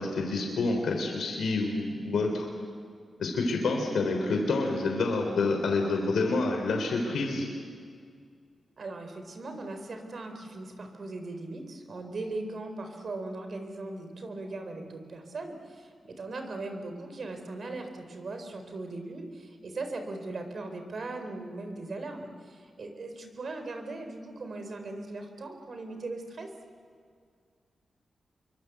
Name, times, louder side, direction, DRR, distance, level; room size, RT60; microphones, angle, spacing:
voice 1, 0.0-2.5 3.2-7.5, left 3 dB, 85° left, 2 dB, 3.5 m, -28 dB
voice 2, 8.8-26.5, right 2 dB, 60° right, 6 dB, 4.1 m, -39 dB
27.5 x 23.5 x 8.2 m, 2.1 s
cardioid pair, 70°, 0 cm